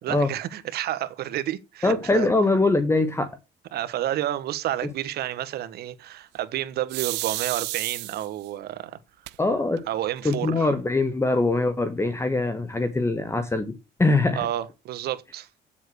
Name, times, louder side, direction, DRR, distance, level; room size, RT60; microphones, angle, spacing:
voice 1, 0.0-2.3 3.7-9.0 9.9-10.7 14.4-15.5, right 13 dB, 70° right, 1.3 m, -30 dB
voice 2, 1.8-3.3 4.8-4.9 9.4-9.8 10.2-13.7 14.0-14.5, left 2 dB, 15° left, 1.3 m, -22 dB
sound 1, 6.9-8.5 9.3-9.4 9.8-9.9 10.1-10.7, right 20 dB, 90° right, 0.6 m, -31 dB
8.4 x 7.5 x 6.3 m
cardioid pair, 110°, 17 cm